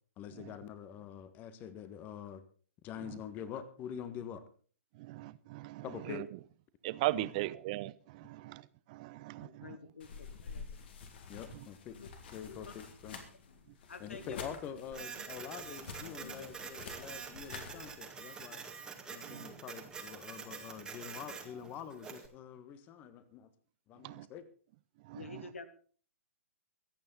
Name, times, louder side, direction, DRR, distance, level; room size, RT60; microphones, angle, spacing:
voice 1, 0.2-2.4 2.8-4.4 5.8-6.2 7.2-7.3 11.3-12.0 12.3-13.2 14.0-18.6 19.1-23.5 23.9-24.5, left 9 dB, 25° left, 14 dB, 1.5 m, -45 dB
voice 2, 5.0-6.3 6.8-8.6 8.9-9.8 11.5-11.7 19.2-19.5 24.0-24.3 25.0-25.4, right 18 dB, 35° right, 18 dB, 0.7 m, -39 dB
voice 3, 9.4-10.7 11.9-12.1 12.5-12.7 13.9-14.4 15.2-15.3 16.0-16.4 25.1-25.7, left 4 dB, 65° left, 11 dB, 1.9 m, -49 dB
sound 1, 10.0-17.9, left 5 dB, 45° left, 2.8 m, -49 dB
Printer, 14.9-22.3, right 5 dB, 10° right, 1.9 m, -46 dB
23.5 x 9.1 x 4.1 m, 0.42 s
figure-of-eight pair, 120°, 7 cm